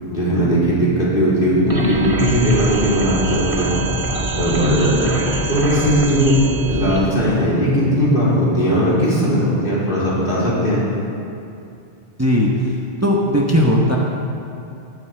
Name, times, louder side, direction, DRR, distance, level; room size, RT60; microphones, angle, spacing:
voice 1, 0.1-3.9 4.4-5.2 5.5-6.4 6.7-10.8, equal, 55° left, -8 dB, 3.9 m, -18 dB
sound 1, 1.7-7.0, right 2 dB, 35° right, 1.7 m, -24 dB
voice 2, 12.2-12.7 13.0-14.0, equal, 15° right, -2 dB, 1.0 m, -17 dB
15.5 x 11.5 x 3.4 m, 2.6 s
omnidirectional pair, 1.0 m